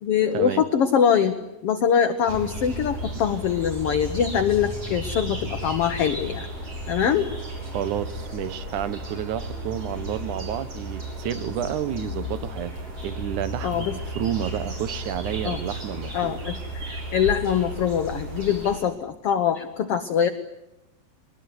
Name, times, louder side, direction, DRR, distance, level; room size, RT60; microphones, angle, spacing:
voice 1, 0.0-1.4 1.6-6.5 6.9-7.3 13.6-14.0 15.4-15.6 16.1-20.3, left 8 dB, 65° left, 8 dB, 1.5 m, -23 dB
sound 1, 2.2-18.8, equal, 45° right, 7.2 m, -34 dB
voice 2, 7.7-12.7 13.0-16.4, right 10 dB, 70° right, 13 dB, 2.4 m, -30 dB
22.5 x 20.0 x 9.6 m, 0.92 s
omnidirectional pair, 4.0 m